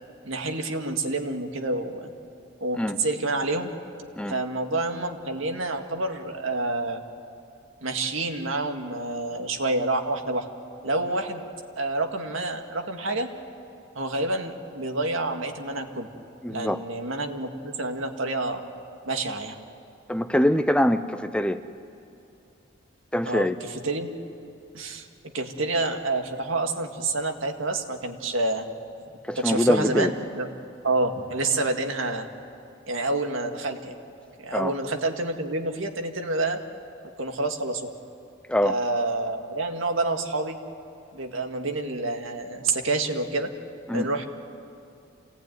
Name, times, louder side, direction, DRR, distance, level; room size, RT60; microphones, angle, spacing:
voice 1, 0.2-2.1 2.6-3.7 4.3-7.0 7.8-10.5 10.8-11.4 11.8-13.3 14.0-16.1 16.5-18.6 19.1-19.6 23.2-24.1 24.7-25.1 25.3-28.7 29.4-30.5 30.8-32.3 32.9-33.9 34.4-36.6 37.2-37.9 38.6-40.6 41.1-43.5 43.9-44.2, right 2 dB, 80° right, 4 dB, 1.9 m, -28 dB
voice 2, 16.4-16.8 20.1-21.6 23.1-23.6 29.3-30.1 34.5-34.7 38.5-38.7 43.9-44.1, equal, 5° left, 10 dB, 0.5 m, -23 dB
27.5 x 18.5 x 9.4 m, 2.7 s
head